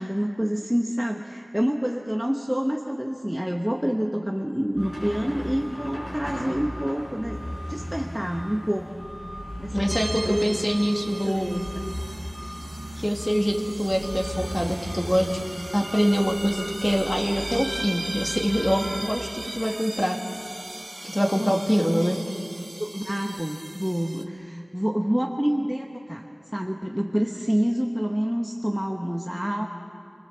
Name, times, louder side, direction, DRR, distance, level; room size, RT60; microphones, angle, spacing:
voice 1, 0.0-9.1 9.6-10.6 11.2-11.8 21.2-21.5 22.8-26.2 26.5-29.7, equal, 5° right, 1 dB, 1.2 m, -27 dB
sound 1, 4.7-18.7, equal, 50° left, 7.4 m, -36 dB
voice 2, 9.7-11.6 13.0-15.4 15.7-20.2 21.1-22.2, equal, 20° left, 1 dB, 2.5 m, -24 dB
sound 2, 9.9-24.2, right 1 dB, 35° right, 1.3 m, -38 dB
27.5 x 20.0 x 7.4 m, 3.0 s
wide cardioid pair, 55°, 0 cm